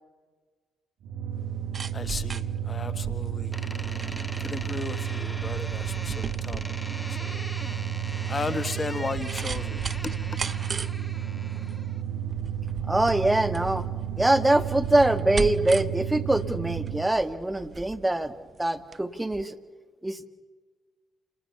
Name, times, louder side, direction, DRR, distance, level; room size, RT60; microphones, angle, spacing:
sound 1, 1.0-17.1, right 9 dB, 75° right, 1.5 m, -32 dB
sound 2, 1.4-19.0 19.3-19.4, right 5 dB, 45° right, 0.7 m, -39 dB
voice 1, 1.9-3.6 4.4-6.6 7.2-7.4 8.3-10.1, left 4 dB, 35° left, 12 dB, 1.6 m, -35 dB
Door, 3.5-12.0, equal, 5° left, 2.1 m, -41 dB
voice 2, 12.8-13.9 14.2-19.6 20.0-20.3, right 1 dB, 15° right, 9 dB, 1.9 m, -24 dB
29.5 x 19.5 x 7.2 m, 1.4 s
hypercardioid pair, 50°, 0 cm